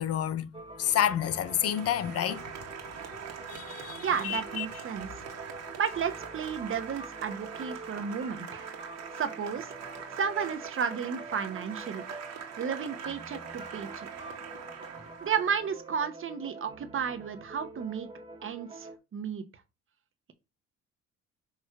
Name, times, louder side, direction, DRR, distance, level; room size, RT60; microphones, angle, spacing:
voice 1, 0.0-2.6 3.5-4.7, left 10 dB, 55° left, 0.6 m, -30 dB
sound 1, 0.5-19.0, right 2 dB, 20° right, 1.4 m, -46 dB
Applause, 0.9-15.8, right 7 dB, 60° right, 1.6 m, -43 dB
voice 2, 4.0-5.2 5.7-8.7 9.1-9.7 10.2-12.0 12.6-14.1 15.2-18.1 18.4-19.4, right 7 dB, 45° right, 1.1 m, -33 dB
6.4 x 3.1 x 4.8 m
supercardioid pair, 85°, 29 cm